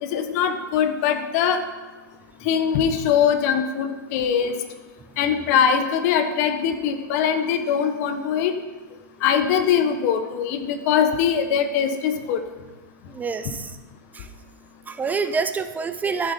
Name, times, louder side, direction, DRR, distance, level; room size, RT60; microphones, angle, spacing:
voice 1, 0.0-1.6 2.4-4.5 5.2-8.5 9.2-12.4, left 8 dB, 50° left, 7 dB, 1.3 m, -22 dB
voice 2, 13.1-13.7 14.1-14.3 14.9-16.3, right 5 dB, 15° right, 10 dB, 0.4 m, -26 dB
13.5 x 7.4 x 4.5 m, 1.3 s
hypercardioid pair, 120°, 11 cm